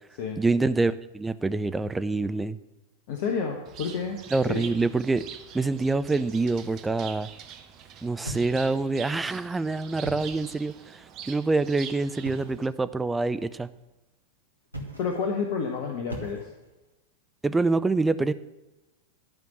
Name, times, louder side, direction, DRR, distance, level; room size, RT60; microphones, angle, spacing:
voice 1, 0.4-2.6 4.3-5.2 5.5-7.3 8.0-11.0 11.3-13.7 17.4-18.3, right 3 dB, 10° right, 13 dB, 0.4 m, -26 dB
voice 2, 3.1-4.2 4.5-4.6 15.0-16.5, left 5 dB, 50° left, 2 dB, 1.1 m, -29 dB
Bird, 3.7-12.7, right 8 dB, 35° right, 0.9 m, -45 dB
sound 1, 8.2-9.1 9.9-10.6 12.2-12.7 14.7-15.3 16.1-16.8, right 1 dB, 85° right, 1.4 m, -40 dB
11.5 x 5.2 x 7.4 m, 1.0 s
figure-of-eight pair, 90°, 0 cm